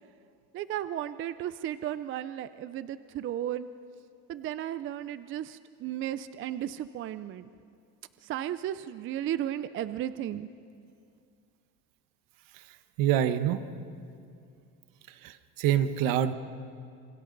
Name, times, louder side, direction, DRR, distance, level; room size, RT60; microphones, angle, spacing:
voice 1, 0.5-3.7 4.3-7.5 8.2-10.5, right 11 dB, 35° right, 13 dB, 0.4 m, -34 dB
voice 2, 13.0-13.6 15.2-16.3, right 10 dB, 75° right, 11 dB, 1.1 m, -26 dB
27.5 x 25.5 x 4.0 m, 2.4 s
cardioid pair, 145°, 34 cm